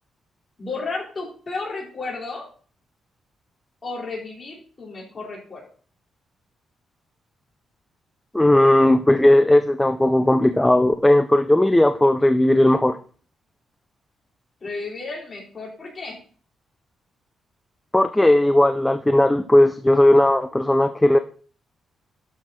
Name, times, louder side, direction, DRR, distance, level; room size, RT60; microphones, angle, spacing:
voice 1, 0.6-2.5 3.8-5.6 14.6-16.2, left 3 dB, 25° left, -3 dB, 4.4 m, -33 dB
voice 2, 8.3-13.0 17.9-21.2, left 1 dB, 5° left, 8 dB, 0.5 m, -16 dB
12.0 x 6.7 x 4.3 m, 0.43 s
wide cardioid pair, 170°, 0 cm